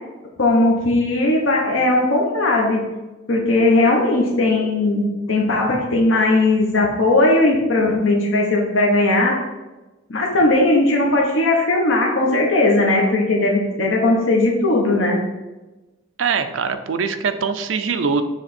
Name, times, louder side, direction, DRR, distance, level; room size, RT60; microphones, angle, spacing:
voice 1, 0.4-2.8 3.3-9.4 10.1-15.2, left 2 dB, 70° left, -1 dB, 1.0 m, -18 dB
voice 2, 16.2-18.2, right 5 dB, 65° right, 8 dB, 0.5 m, -22 dB
7.2 x 3.3 x 4.2 m, 1.1 s
head